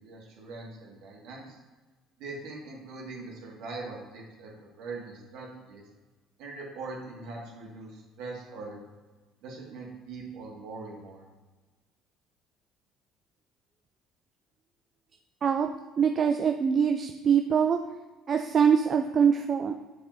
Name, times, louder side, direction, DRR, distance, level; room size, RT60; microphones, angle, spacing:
voice 1, 0.0-1.6 2.2-5.8 6.4-8.8 9.4-11.3, right 3 dB, 60° right, -2 dB, 1.9 m, -42 dB
voice 2, 16.0-17.8 18.3-19.7, right 7 dB, 40° right, 5 dB, 0.4 m, -23 dB
8.0 x 6.7 x 2.7 m, 1.2 s
figure-of-eight pair, 55°, 0 cm